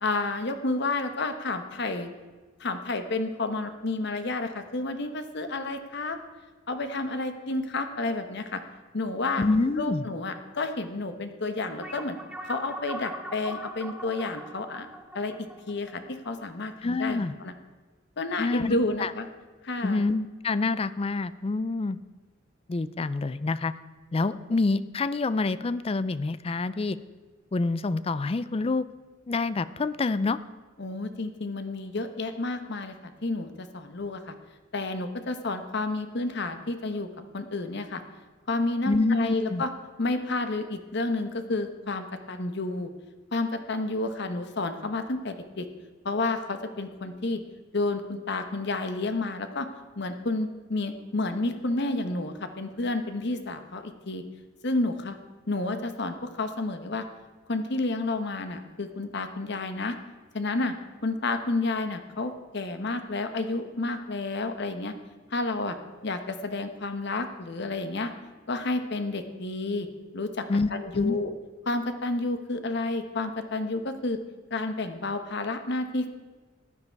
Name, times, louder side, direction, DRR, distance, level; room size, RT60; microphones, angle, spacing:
voice 1, 0.0-2.1 2.6-6.2 6.7-8.6 8.9-9.4 9.8-12.2 12.4-14.9 15.1-15.3 15.7-17.5 18.2-19.3 19.6-20.0 30.8-32.9 33.2-34.3 34.7-37.1 37.3-38.0 38.5-39.7 40.0-42.9 43.3-45.6 46.0-47.4 47.7-49.7 50.0-54.2 54.6-55.2 55.5-57.0 57.5-60.0 60.3-60.7 61.0-64.9 65.3-65.8 66.0-68.1 68.5-69.9 70.1-70.4 70.7-71.3 71.7-74.2 74.5-76.1, left 2 dB, 60° left, 8 dB, 1.1 m, -30 dB
voice 2, 9.4-10.1 16.8-17.3 18.4-19.1 19.8-22.0 22.7-23.7 24.1-27.0 27.5-28.9 29.3-30.4 38.9-39.6 70.5-71.2, left 3 dB, 30° left, 15 dB, 0.4 m, -27 dB
sound 1, 11.8-16.7, equal, 5° right, 0.8 m, -40 dB
15.0 x 9.7 x 4.6 m, 1.3 s
head